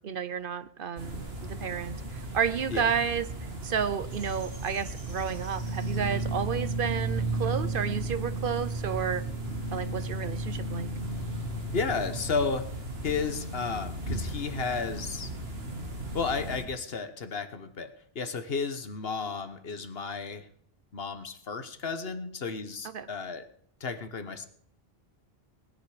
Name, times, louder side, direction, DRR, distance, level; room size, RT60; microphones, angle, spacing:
voice 1, 0.0-9.2 9.7-10.9 22.9-23.1, right 7 dB, 60° right, 14 dB, 0.9 m, -31 dB
sound 1, 1.0-16.6, right 2 dB, 75° right, 2.2 m, -34 dB
voice 2, 11.7-15.3 16.1-20.5 20.9-23.5 23.8-24.5, left 4 dB, 70° left, 10 dB, 1.4 m, -33 dB
19.5 x 10.5 x 5.0 m, 0.63 s
omnidirectional pair, 1.0 m